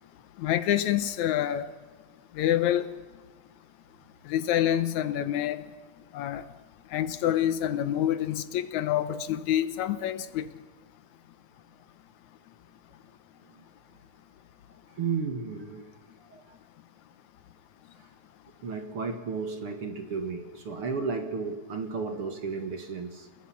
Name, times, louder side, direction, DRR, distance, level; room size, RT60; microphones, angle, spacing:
voice 1, 0.4-1.7 2.4-2.9 4.3-5.6 6.1-6.4 6.9-10.5, left 11 dB, 70° left, 12 dB, 1.9 m, -27 dB
voice 2, 14.9-15.9 16.3-16.6 18.0-18.1 18.6-23.3, right 5 dB, 50° right, 5 dB, 2.2 m, -33 dB
29.5 x 20.0 x 5.8 m, 1.4 s
omnidirectional pair, 4.0 m